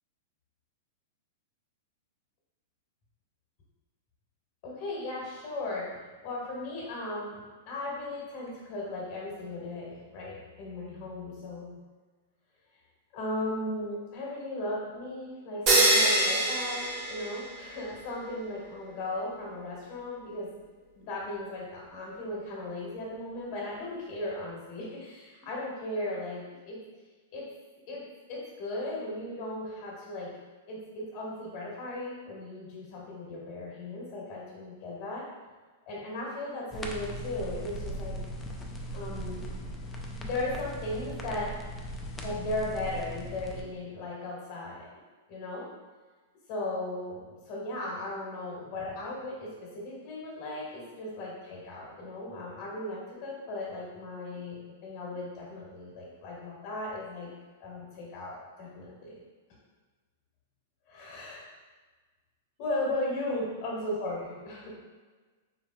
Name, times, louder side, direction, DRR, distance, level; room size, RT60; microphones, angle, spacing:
voice 1, 4.6-11.7 13.1-20.5 20.9-26.8 27.3-27.4 27.9-28.0 28.3-30.3 30.7-35.2 35.9-38.2 38.9-39.6 40.2-41.5 42.2-44.9 45.3-45.7 46.5-57.3 57.6-59.2 60.9-61.5 62.6-64.7, left 2 dB, 50° left, -4 dB, 1.2 m, -36 dB
sound 1, 15.7-17.8, right 1 dB, 40° right, 0.6 m, -24 dB
sound 2, 36.7-43.6, right 1 dB, 15° left, 0.3 m, -38 dB
4.5 x 2.0 x 2.2 m, 1.4 s
hypercardioid pair, 125°, 0 cm